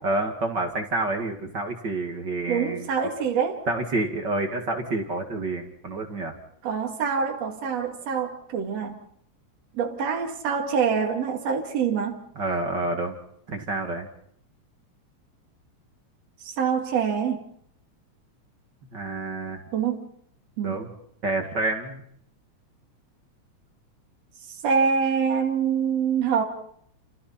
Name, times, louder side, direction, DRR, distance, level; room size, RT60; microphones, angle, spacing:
voice 1, 0.0-2.9 3.7-6.3 12.4-13.2 13.5-14.1 18.9-19.6 20.6-20.9 21.2-22.0, right 2 dB, 40° right, 3 dB, 2.4 m, -28 dB
voice 2, 2.5-3.6 6.6-9.0 9.7-12.2 16.4-17.4 19.7-20.0 20.6-20.8 24.5-26.4, right 6 dB, 60° right, 2 dB, 3.3 m, -25 dB
29.5 x 28.5 x 4.3 m, 0.69 s
omnidirectional pair, 3.4 m